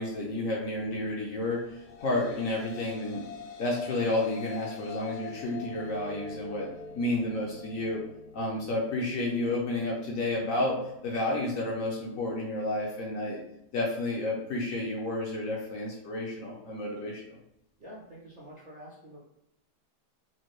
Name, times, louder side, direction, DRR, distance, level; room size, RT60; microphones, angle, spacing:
voice 1, 0.0-3.3 3.6-6.7 6.9-8.0 8.3-13.4 13.7-17.2, left 2 dB, 60° left, -2 dB, 1.0 m, -31 dB
sound 1, 1.6-10.1, left 5 dB, 75° left, 0.6 m, -45 dB
voice 2, 17.8-19.3, equal, 35° right, -7 dB, 0.8 m, -47 dB
4.3 x 2.3 x 3.1 m, 0.80 s
omnidirectional pair, 1.8 m